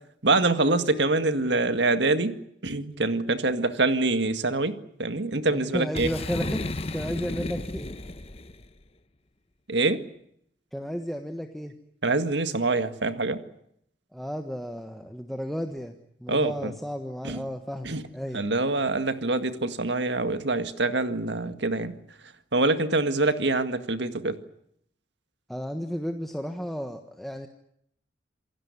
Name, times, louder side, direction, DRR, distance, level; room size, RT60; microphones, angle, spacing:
voice 1, 0.2-2.4 2.6-6.1 9.7-10.0 12.0-13.4 16.3-16.7 17.2-17.4 17.9-18.0 18.3-21.9 22.5-24.4, right 2 dB, 65° right, 10 dB, 1.9 m, -25 dB
voice 2, 5.5-7.9 10.7-11.7 14.1-15.9 16.2-18.4 25.5-27.5, equal, ahead, 4 dB, 1.4 m, -33 dB
Boom, 5.9-8.7, left 2 dB, 30° left, 1.0 m, -33 dB
28.0 x 17.5 x 9.7 m, 0.73 s
head